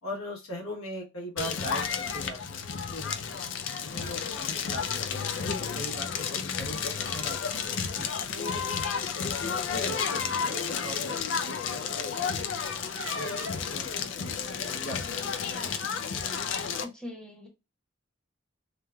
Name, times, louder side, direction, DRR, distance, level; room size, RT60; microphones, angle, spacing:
voice 1, 0.0-2.6 2.9-3.4 3.8-5.2 5.6-7.7 8.3-8.6 8.9-15.3, left 1 dB, 90° left, -2 dB, 1.1 m, -41 dB
Crackle, 1.4-16.8, left 6 dB, 60° left, 0.4 m, -32 dB
sound 1, 5.4-5.5 6.8-7.7 7.9-8.1 8.5-8.7 9.7-9.8 10.4-10.7 13.0-13.7, right 3 dB, 70° right, 1.0 m, -43 dB
voice 2, 16.8-17.5, left 1 dB, 5° left, -1 dB, 0.8 m, -41 dB
3.1 x 2.2 x 2.3 m, 0.26 s
head